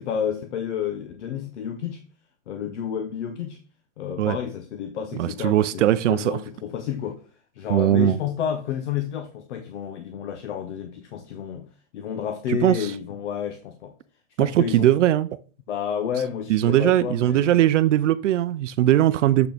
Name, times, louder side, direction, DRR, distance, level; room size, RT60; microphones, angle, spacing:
voice 1, 0.0-2.0 2.5-3.6 4.0-7.2 7.5-11.7 11.9-13.9 14.4-15.0 15.7-17.6, left 8 dB, 60° left, 1.0 m, -30 dB
voice 2, 5.2-6.4 7.7-8.2 12.5-12.8 14.4-15.3 16.5-19.5, right 13 dB, 65° right, 0.5 m, -20 dB
7.0 x 6.1 x 3.4 m
supercardioid pair, 180°, 40 cm